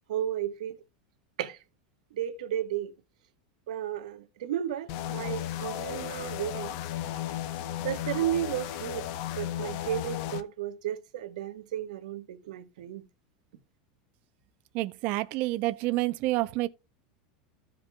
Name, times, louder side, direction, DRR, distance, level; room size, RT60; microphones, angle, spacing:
voice 1, 0.1-0.8 1.4-1.6 2.1-2.9 3.7-6.8 7.8-9.1 9.4-13.1, right 11 dB, 85° right, 1.2 m, -33 dB
sound 1, 4.9-10.4, left 12 dB, 50° left, 0.8 m, -35 dB
voice 2, 14.7-16.7, right 18 dB, 45° right, 0.5 m, -28 dB
15.0 x 5.2 x 2.2 m
supercardioid pair, 160°, 4 cm